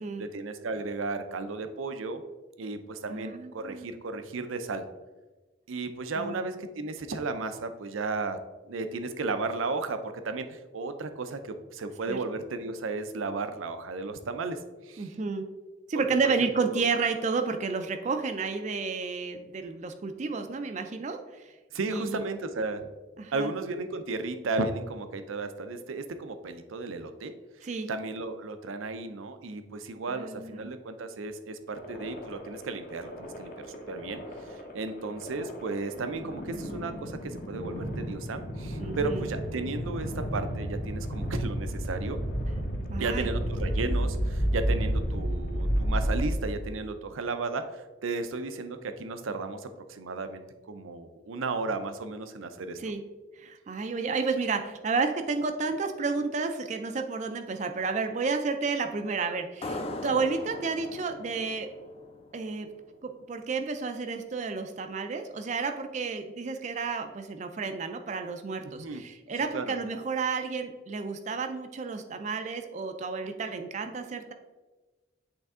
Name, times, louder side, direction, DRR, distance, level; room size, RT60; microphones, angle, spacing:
voice 1, 0.2-2.2 2.6-4.9 5.7-8.4 8.7-14.6 14.8-15.1 15.9-16.0 16.4-16.8 21.7-22.9 23.3-27.3 27.9-34.2 34.5-42.2 43.0-52.8 68.8-69.0 69.5-69.7, right 3 dB, 90° right, 9 dB, 0.5 m, -34 dB
voice 2, 3.1-3.9 6.2-6.4 12.1-12.2 15.0-15.5 15.9-21.4 21.9-22.2 23.2-23.5 27.6-27.9 30.1-30.7 38.8-39.3 42.9-43.3 52.8-53.0 53.4-61.7 62.3-62.7 63.0-74.3, right 4 dB, 35° right, 6 dB, 0.4 m, -31 dB
sound 1, 31.7-46.8, equal, 45° left, 0.9 m, -32 dB
sound 2, 59.6-62.9, left 1 dB, 30° left, 0.5 m, -39 dB
7.9 x 3.4 x 3.6 m, 1.2 s
head